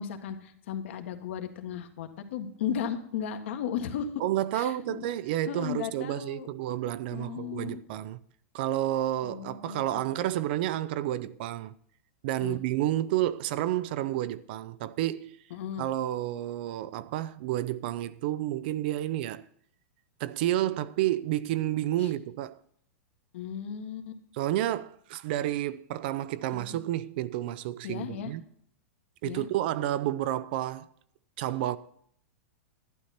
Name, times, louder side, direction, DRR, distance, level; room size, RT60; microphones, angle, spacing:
voice 1, 0.0-4.1 4.5-5.1 5.5-6.5 7.1-7.8 9.2-10.0 12.4-12.6 15.5-15.9 22.0-22.1 23.3-24.2 26.5-26.8 27.8-28.3 29.2-29.5, left 8 dB, 60° left, 1.6 m, -35 dB
voice 2, 4.2-8.2 8.5-11.7 12.2-15.4 15.8-19.5 20.2-22.6 24.3-28.4 29.2-30.9 31.4-31.8, right 13 dB, 45° right, 0.5 m, -30 dB
12.0 x 11.0 x 4.3 m
supercardioid pair, 170°, 8 cm